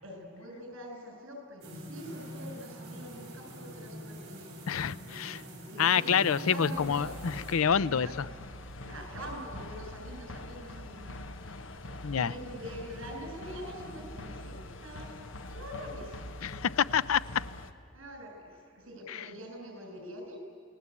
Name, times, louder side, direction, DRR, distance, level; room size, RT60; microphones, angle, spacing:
voice 1, 0.0-4.6 5.7-7.1 7.7-8.1 8.8-11.3 12.1-15.1 15.4-16.3 17.9-20.4, equal, 70° right, 3 dB, 6.8 m, -44 dB
sound 1, 1.6-7.5, equal, 50° right, 7.5 m, -44 dB
voice 2, 4.7-5.4 5.8-8.3 12.0-12.3 16.4-17.2 19.1-19.2, left 7 dB, 85° left, 17 dB, 0.5 m, -27 dB
sound 2, 6.7-17.7, left 2 dB, 65° left, 1.2 m, -44 dB
29.0 x 19.0 x 8.4 m, 2.6 s
head